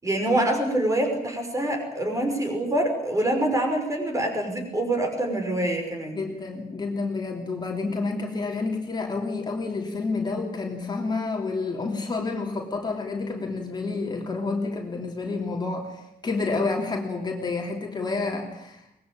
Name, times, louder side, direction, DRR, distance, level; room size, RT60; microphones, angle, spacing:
voice 1, 0.0-6.2, right 1 dB, 20° right, 4 dB, 5.7 m, -25 dB
voice 2, 6.1-18.9, left 3 dB, 25° left, 1 dB, 3.0 m, -29 dB
23.5 x 20.5 x 8.9 m, 0.81 s
wide cardioid pair, 175°, 16 cm